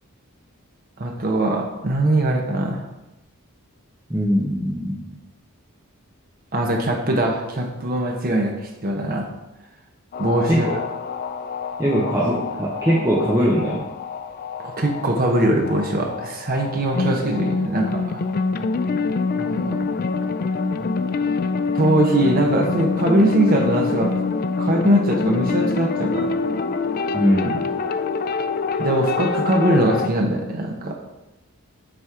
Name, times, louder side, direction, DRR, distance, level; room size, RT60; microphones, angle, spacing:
voice 1, 1.0-2.8 6.5-9.3 10.2-10.6 14.6-18.2 19.4-19.8 21.7-24.2 24.6-26.4 28.8-31.0, right 1 dB, 40° right, 2 dB, 0.9 m, -21 dB
voice 2, 4.1-5.0 10.5-10.7 11.8-13.8 27.1-27.6, equal, 15° right, -6 dB, 0.9 m, -21 dB
sound 1, 10.1-30.1, left 4 dB, 40° left, 0.3 m, -26 dB
7.7 x 4.2 x 4.8 m, 0.99 s
head